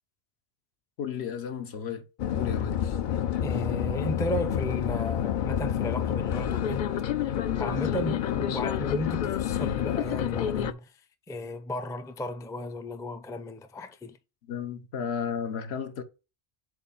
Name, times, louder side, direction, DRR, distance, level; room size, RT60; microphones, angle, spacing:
voice 1, 1.0-2.0 2.3-3.0 14.5-16.0, left 7 dB, 80° left, 1.1 m, -33 dB
sound 1, 2.2-10.7, left 9 dB, 60° left, 0.6 m, -28 dB
voice 2, 3.4-6.9 7.6-10.8 11.3-14.2, equal, 5° left, 0.3 m, -34 dB
7.6 x 2.5 x 5.6 m
omnidirectional pair, 1.1 m